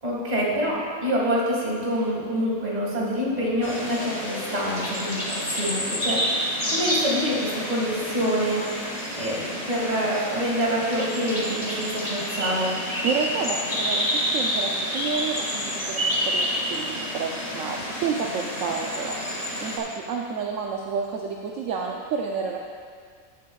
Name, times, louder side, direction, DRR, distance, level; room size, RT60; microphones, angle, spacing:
voice 1, 0.0-8.8 9.2-12.8, equal, 30° right, -5 dB, 2.0 m, -26 dB
sound 1, 3.6-19.8, equal, 30° left, 1.4 m, -29 dB
voice 2, 13.0-19.2 19.6-22.7, right 5 dB, 70° right, 0 dB, 1.0 m, -30 dB
15.0 x 7.5 x 2.3 m, 2.1 s
omnidirectional pair, 1.4 m